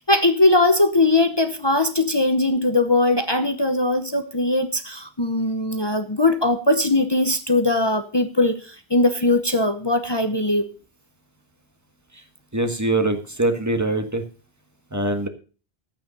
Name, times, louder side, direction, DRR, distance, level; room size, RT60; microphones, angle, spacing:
voice 1, 0.1-10.7, left 2 dB, 25° left, 7 dB, 0.9 m, -20 dB
voice 2, 12.5-14.2 14.9-15.3, right 2 dB, 15° right, 7 dB, 1.6 m, -23 dB
12.5 x 8.8 x 5.3 m, 0.37 s
omnidirectional pair, 1.0 m